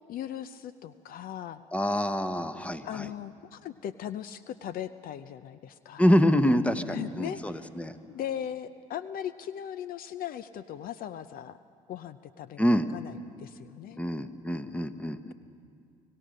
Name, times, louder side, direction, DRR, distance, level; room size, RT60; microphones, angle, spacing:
voice 1, 0.1-1.6 2.8-6.0 6.9-7.6 8.1-11.6 11.9-14.0, left 10 dB, 60° left, 14 dB, 0.6 m, -38 dB
voice 2, 1.7-3.1 6.0-8.0 12.6-12.9 14.0-15.3, equal, 10° left, 11 dB, 1.1 m, -26 dB
24.5 x 16.5 x 6.5 m, 2.3 s
hypercardioid pair, 60°, 17 cm